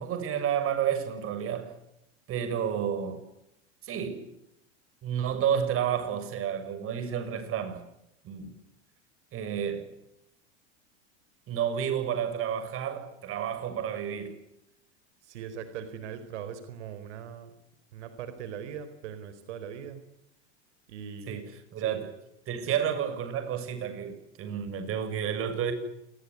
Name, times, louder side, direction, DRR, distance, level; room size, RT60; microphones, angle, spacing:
voice 1, 0.0-1.8 2.3-3.2 3.8-4.3 5.0-7.8 8.2-8.5 9.3-9.9 11.5-14.4 21.3-22.1 22.5-25.7, right 9 dB, 40° right, 6.9 m, -31 dB
voice 2, 15.2-17.5 17.9-20.0 20.9-21.4 21.8-22.0, right 8 dB, 80° right, 4.4 m, -40 dB
27.5 x 21.0 x 9.7 m
supercardioid pair, 125°, 35 cm